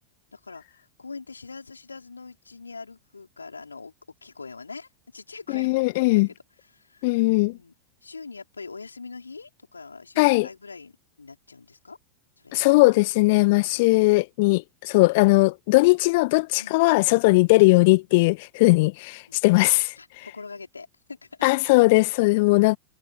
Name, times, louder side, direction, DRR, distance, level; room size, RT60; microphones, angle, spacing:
voice 1, 0.3-3.9 4.2-7.7 8.0-10.9 11.2-12.0 12.4-12.5 13.6-13.8 16.6-16.8 19.3-19.4 20.0-21.5, left 4 dB, 75° left, 4.6 m, -43 dB
voice 2, 5.5-6.3 7.0-7.6 10.2-10.5 12.5-19.9 21.4-22.8, left 24 dB, 50° left, 1.6 m, -19 dB
figure-of-eight pair, 90°, 0 cm